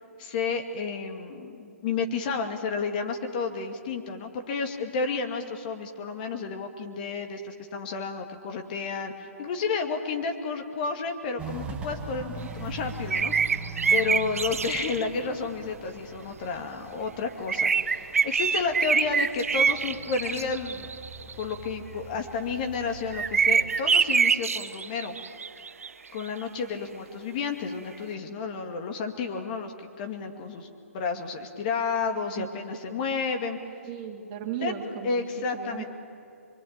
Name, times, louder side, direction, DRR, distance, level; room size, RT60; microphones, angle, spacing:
voice 1, 0.2-20.9 21.2-25.2 26.1-33.6 34.6-34.7 35.0-35.8, left 5 dB, 35° left, 5 dB, 2.3 m, -31 dB
Walk footsteps, 11.4-23.8, right 3 dB, 15° right, 1.5 m, -42 dB
sound 1, 13.1-15.1 17.5-21.4 23.1-25.9 26.2-26.3, right 5 dB, 70° right, 1.0 m, -25 dB
voice 2, 33.8-35.9, right 7 dB, 30° right, 2 dB, 2.9 m, -36 dB
24.0 x 24.0 x 9.0 m, 2.4 s
figure-of-eight pair, 135°, 8 cm